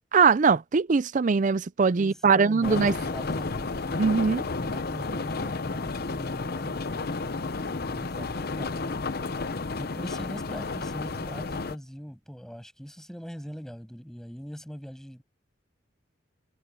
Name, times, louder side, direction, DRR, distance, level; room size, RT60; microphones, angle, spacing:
voice 1, 0.1-2.9 4.0-4.4, right 5 dB, 40° right, 0.4 m, -21 dB
voice 2, 2.0-4.2 4.6-9.0 9.7-15.2, equal, 5° left, 7.9 m, -42 dB
sound 1, 2.6-11.8, left 3 dB, 50° left, 0.8 m, -32 dB
head